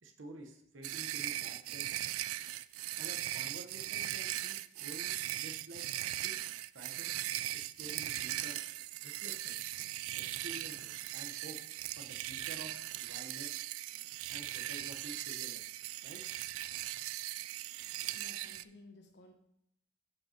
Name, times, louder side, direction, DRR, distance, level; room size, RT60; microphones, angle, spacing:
voice 1, 0.0-1.9 3.0-5.8 6.2-6.4 6.7-7.1 7.5-8.6 9.0-9.7 10.1-11.6 12.0-13.6 14.3-15.6 16.0-16.2, right 2 dB, 65° right, 4 dB, 1.0 m, -50 dB
sound 1, 0.8-18.6, right 14 dB, 85° right, 0.3 m, -39 dB
voice 2, 18.0-19.3, left 2 dB, 55° left, 4 dB, 1.0 m, -56 dB
14.5 x 5.4 x 2.9 m, 0.76 s
head